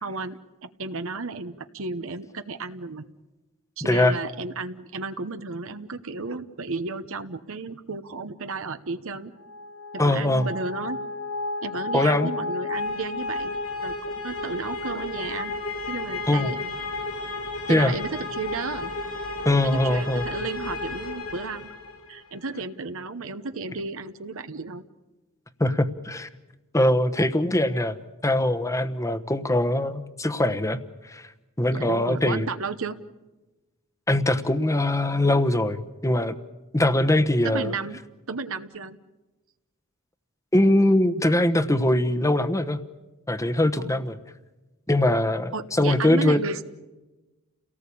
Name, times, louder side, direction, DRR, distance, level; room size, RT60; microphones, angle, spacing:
voice 1, 0.0-3.1 3.8-9.3 10.0-11.0 11.6-13.6 13.8-15.5 15.9-16.7 17.7-18.9 19.6-21.7 22.1-24.8 31.7-33.0 37.4-38.0 38.3-39.0 43.8-44.0 45.5-46.6, right 4 dB, 65° right, 9 dB, 1.0 m, -33 dB
sound 1, 9.4-22.2, left 3 dB, 85° left, 6.6 m, -33 dB
voice 2, 10.0-10.5 11.9-12.3 16.3-16.5 17.7-17.9 19.4-20.2 25.6-26.3 26.7-28.0 28.2-30.8 31.1-31.2 31.6-32.5 34.1-36.3 36.7-37.7 40.5-42.8 43.3-44.2 44.9-46.4, left 1 dB, 15° left, 9 dB, 1.1 m, -22 dB
30.0 x 18.5 x 8.6 m, 1.1 s
head